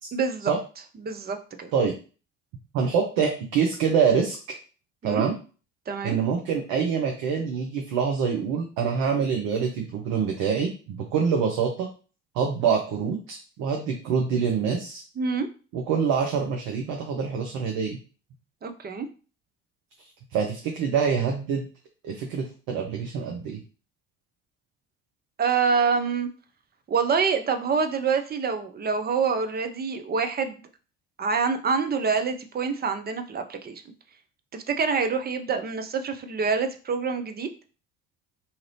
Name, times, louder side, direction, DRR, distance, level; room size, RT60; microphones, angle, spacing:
voice 1, 0.1-0.5 1.0-1.7 5.0-5.2 5.9-6.2 15.2-15.5 18.6-19.1 25.4-26.3 26.9-30.6 31.2-33.8 34.5-37.5, right 5 dB, 25° right, 8 dB, 0.5 m, -26 dB
voice 2, 2.7-4.4 5.0-5.3 6.0-11.9 12.3-15.0 15.7-18.0 20.3-21.6 22.0-23.6, right 6 dB, 65° right, 2 dB, 0.7 m, -25 dB
2.7 x 2.5 x 3.2 m, 0.36 s
hypercardioid pair, 55°, 37 cm